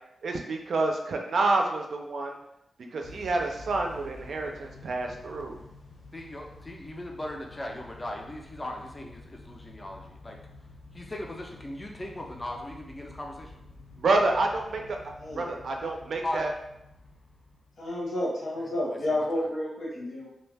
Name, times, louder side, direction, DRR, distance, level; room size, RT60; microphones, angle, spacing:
voice 1, 0.2-2.4 2.9-5.6 14.0-15.0 15.3-16.5, right 2 dB, 70° right, 2 dB, 0.4 m, -28 dB
Motor vehicle (road) / Engine starting / Accelerating revving vroom, 3.0-18.0, left 3 dB, 55° left, 0.6 m, -49 dB
voice 2, 6.1-10.4 10.9-13.5 16.2-16.5 18.6-19.5, left 1 dB, 20° left, 1 dB, 0.4 m, -38 dB
voice 3, 17.8-20.3, left 1 dB, 90° left, -5 dB, 1.1 m, -30 dB
2.5 x 2.2 x 3.2 m, 0.83 s
wide cardioid pair, 145°, 0 cm